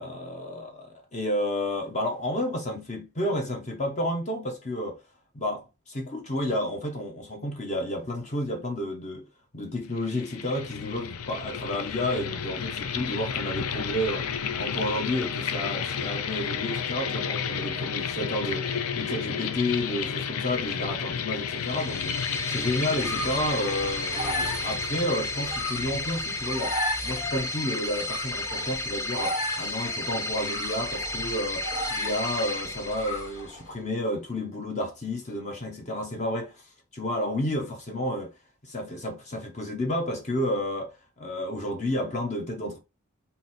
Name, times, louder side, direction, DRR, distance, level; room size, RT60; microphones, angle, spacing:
voice 1, 0.0-5.0 5.3-9.3 9.5-14.3 14.6-22.2 22.5-36.7 36.9-38.3 38.6-42.8, left 1 dB, 30° left, 0.8 m, -31 dB
sound 1, 9.9-26.6, left 7 dB, 75° left, 0.5 m, -32 dB
sound 2, 21.5-33.5, left 2 dB, 15° left, 0.4 m, -33 dB
sound 3, 22.6-33.7, left 1 dB, 60° left, 2.4 m, -36 dB
3.9 x 2.7 x 4.0 m
head